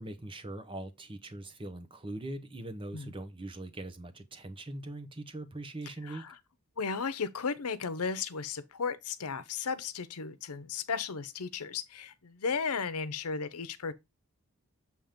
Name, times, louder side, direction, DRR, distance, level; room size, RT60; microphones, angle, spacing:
voice 1, 0.0-6.2, right 2 dB, 25° right, 0.9 m, -41 dB
voice 2, 6.0-6.4 6.8-13.9, left 5 dB, 90° left, 0.8 m, -35 dB
7.5 x 3.0 x 5.1 m
head